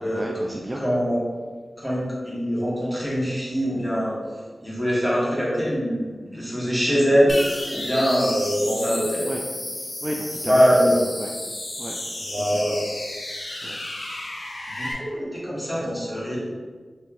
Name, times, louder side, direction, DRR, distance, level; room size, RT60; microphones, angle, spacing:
voice 1, 0.1-0.8 9.2-9.5 9.8-10.6 11.2-11.3 11.8-12.0 12.3-12.7 13.6-13.8, right 1 dB, 25° right, -1 dB, 0.3 m, -33 dB
voice 2, 0.7-1.2 1.8-4.2 4.6-7.4 7.7-9.3 10.5-11.0 12.3-12.8 14.7-16.5, equal, 10° left, -7 dB, 1.5 m, -23 dB
sound 1, 7.3-14.9, left 1 dB, 50° left, 0.6 m, -32 dB
3.0 x 2.8 x 3.7 m, 1.5 s
cardioid pair, 50°, 0 cm